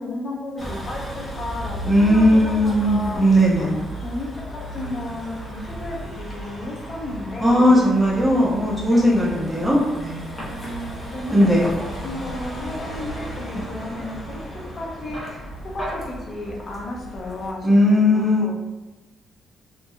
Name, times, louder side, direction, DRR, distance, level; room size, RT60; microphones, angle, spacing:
voice 1, 0.0-3.2 3.6-7.7 8.9-9.4 10.4-11.7 12.0-15.5 15.7-18.5, left 1 dB, 45° left, -2 dB, 0.6 m, -33 dB
Vehicle, 0.6-17.5, right 1 dB, 20° left, 0.8 m, -34 dB
voice 2, 1.8-3.8 7.4-10.3 11.3-11.7 17.6-18.4, equal, 10° right, -7 dB, 1.1 m, -17 dB
2.8 x 2.6 x 2.5 m, 1.1 s
cardioid pair, 90°, 0 cm